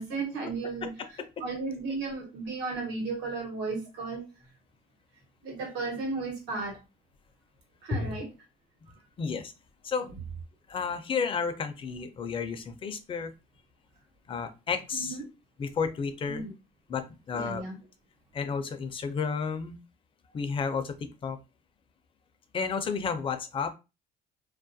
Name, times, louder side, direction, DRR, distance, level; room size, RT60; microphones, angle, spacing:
voice 1, 0.0-0.9 1.4-4.2 5.4-6.8 7.8-8.3 14.9-15.2 16.2-16.5 17.3-17.8, right 3 dB, 85° right, 0 dB, 1.1 m, -34 dB
voice 2, 0.8-1.3 7.9-8.3 9.2-9.5 9.8-10.1 10.7-13.3 14.3-15.2 15.6-16.5 16.9-17.6 18.3-19.8 20.3-21.4 22.5-23.8, left 5 dB, 30° left, 8 dB, 0.4 m, -32 dB
2.3 x 2.1 x 2.6 m, 0.27 s
cardioid pair, 110°, 17 cm